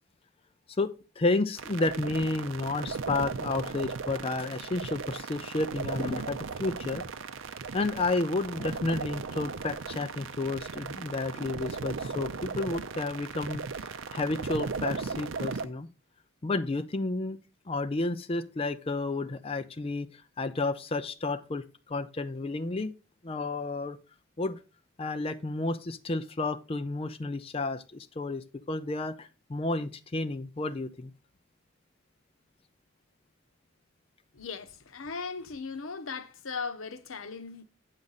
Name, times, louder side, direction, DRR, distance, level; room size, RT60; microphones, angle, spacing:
voice 1, 0.7-7.0 7.7-15.9 16.4-17.4 17.7-22.9 23.2-24.0 24.4-24.6 25.0-31.1, left 2 dB, 30° left, 0.4 m, -31 dB
sound 1, 1.6-15.7, right 4 dB, 75° right, 0.6 m, -37 dB
voice 2, 34.3-37.6, left 5 dB, 90° left, 0.9 m, -38 dB
8.5 x 6.5 x 4.0 m
head